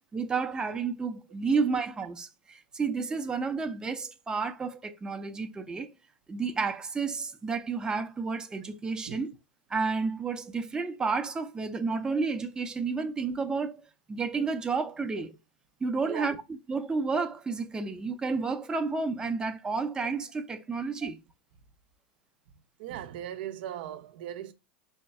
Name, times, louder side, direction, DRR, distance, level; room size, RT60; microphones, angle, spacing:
voice 1, 0.1-5.9 6.3-9.3 9.7-13.8 14.1-15.4 15.8-16.4 16.7-21.2, right 4 dB, 15° right, 0.5 m, -31 dB
voice 2, 16.0-16.4 21.0-21.1 22.8-24.5, right 11 dB, 65° right, 0.5 m, -38 dB
3.5 x 2.2 x 4.1 m
hypercardioid pair, 105°, 6 cm